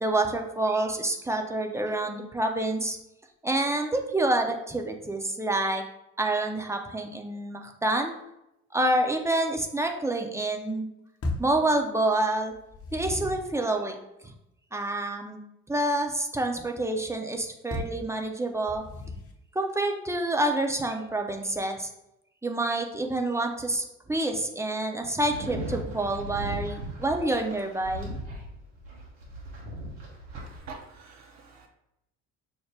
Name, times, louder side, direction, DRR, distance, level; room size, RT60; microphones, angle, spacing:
voice 1, 0.0-3.0 3.4-5.8 6.2-8.1 8.7-10.9 11.4-12.5 12.9-14.0 14.7-18.8 19.5-21.9 22.4-28.1, right 2 dB, 10° right, 3 dB, 0.6 m, -28 dB
sound 1, 11.2-11.6 12.5-13.6 17.7-18.1 18.7-19.4, left 2 dB, 40° left, 0.9 m, -35 dB
sound 2, 25.2-30.6, right 1 dB, 85° right, 1.1 m, -38 dB
voice 2, 30.3-31.7, right 4 dB, 50° right, 2 dB, 0.7 m, -45 dB
5.7 x 2.1 x 3.3 m, 0.84 s
hypercardioid pair, 60°, 36 cm